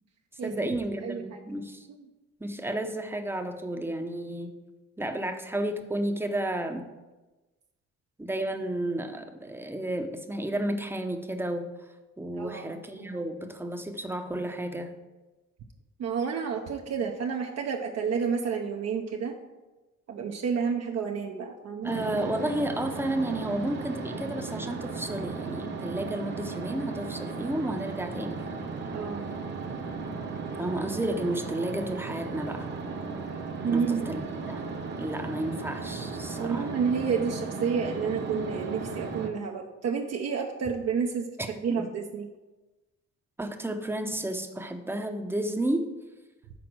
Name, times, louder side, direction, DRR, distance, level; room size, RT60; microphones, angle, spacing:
voice 1, 0.4-1.9 2.4-4.5 5.0-6.9 8.2-11.7 12.2-14.9 21.8-28.4 30.6-32.7 33.7-34.2 34.5-34.7 35.0-36.7 41.4-41.9 43.4-45.9, right 1 dB, 5° right, 5 dB, 0.7 m, -32 dB
voice 2, 1.0-1.4 1.9-2.0 12.4-13.2 16.0-19.4 20.1-21.9 28.9-29.3 33.6-34.1 36.4-41.3 41.6-42.3, right 6 dB, 55° right, 1 dB, 0.7 m, -30 dB
sound 1, 21.8-39.3, right 4 dB, 35° right, 1.0 m, -36 dB
6.1 x 4.2 x 6.0 m, 1.1 s
cardioid pair, 90°, 30 cm